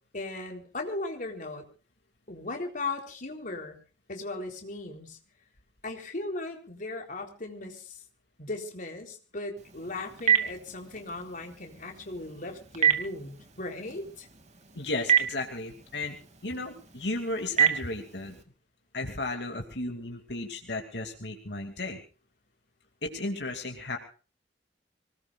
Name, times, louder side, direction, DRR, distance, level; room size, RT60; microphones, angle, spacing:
voice 1, 0.1-1.7 2.3-3.8 4.1-5.2 5.8-8.0 8.4-14.3, left 2 dB, 50° left, 3 dB, 3.9 m, -37 dB
Telephone, 9.6-18.4, right 8 dB, 40° right, 2.7 m, -30 dB
voice 2, 14.8-16.2 16.4-18.4 18.9-22.0 23.0-24.0, left 2 dB, 75° left, 3 dB, 2.7 m, -34 dB
26.0 x 19.0 x 2.5 m, 0.37 s
head